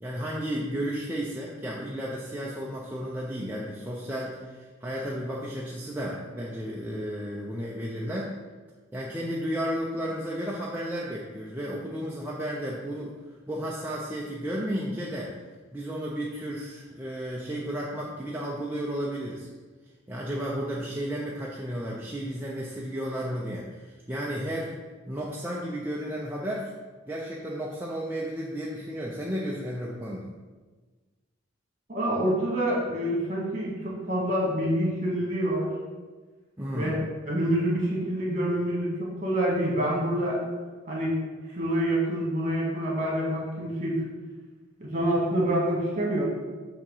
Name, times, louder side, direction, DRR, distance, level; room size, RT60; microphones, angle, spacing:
voice 1, 0.0-8.4 8.9-13.1 13.5-15.3 15.7-19.5 20.1-24.7 25.1-26.7 27.1-30.3 36.6-36.9, equal, 10° right, -5 dB, 0.5 m, -33 dB
voice 2, 31.9-35.7 36.7-37.0 37.3-40.4 40.9-41.1 41.5-44.0 44.8-46.3, right 1 dB, 35° right, -4 dB, 1.8 m, -27 dB
7.1 x 2.9 x 5.5 m, 1.3 s
head